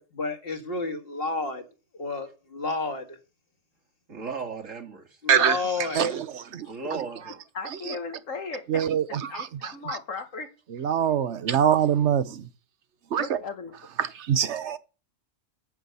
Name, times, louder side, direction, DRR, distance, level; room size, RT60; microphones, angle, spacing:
voice 1, 0.0-1.6 2.0-3.2 5.2-6.2, left 3 dB, 50° left, 2.1 m, -31 dB
voice 2, 4.1-5.2 6.7-7.4 11.8-11.9, right 5 dB, 80° right, 2.5 m, -36 dB
voice 3, 5.3-5.6 5.9-7.0 7.8-8.0 8.7-10.0 10.7-12.5 13.1-13.4 14.0-14.8, right 8 dB, 65° right, 1.1 m, -25 dB
voice 4, 7.5-8.8 9.3-10.5 13.2-13.7, left 4 dB, 90° left, 2.0 m, -36 dB
9.4 x 7.9 x 6.9 m
omnidirectional pair, 1.3 m